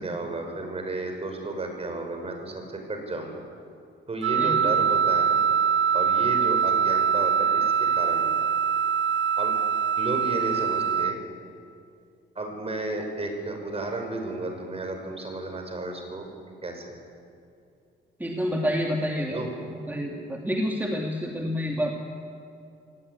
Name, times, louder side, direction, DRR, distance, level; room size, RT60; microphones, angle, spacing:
voice 1, 0.0-3.4 4.1-5.4 5.9-7.7 7.9-8.5 9.4-9.6 10.0-11.2 12.4-16.3 16.6-16.9 19.3-19.5, right 2 dB, 30° right, 4 dB, 5.8 m, -33 dB
Wind instrument woodwind instrument, 4.2-11.1, right 7 dB, 70° right, 0.7 m, -23 dB
voice 2, 4.4-4.7 18.2-19.4 19.9-21.9, equal, 10° right, 0 dB, 2.7 m, -28 dB
22.0 x 18.5 x 9.8 m, 2.6 s
cardioid pair, 90°, 20 cm